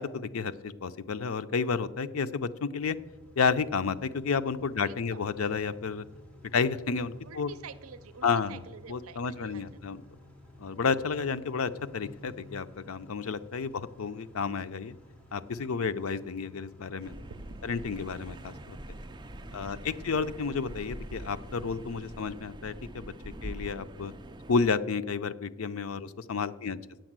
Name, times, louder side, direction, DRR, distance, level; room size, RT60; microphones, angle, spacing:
voice 1, 0.0-3.0 3.4-6.0 6.5-7.5 8.2-8.6 8.9-10.0 10.6-14.9 15.3-17.1 17.6-18.8 19.5-23.0 23.4-24.1 24.5-26.8, left 5 dB, 85° left, 11 dB, 0.5 m, -31 dB
Car / Idling / Accelerating revving vroom, 2.8-21.9, left 1 dB, 5° left, 1.4 m, -54 dB
voice 2, 4.8-5.2 6.1-6.7 7.2-9.9 10.7-10.9 17.3-17.9 19.5-19.9 25.9-26.2 26.6-27.0, right 6 dB, 80° right, 13 dB, 0.5 m, -50 dB
sound 1, 17.0-24.8, right 1 dB, 20° right, 0.5 m, -44 dB
9.0 x 7.9 x 7.4 m, 1.1 s
head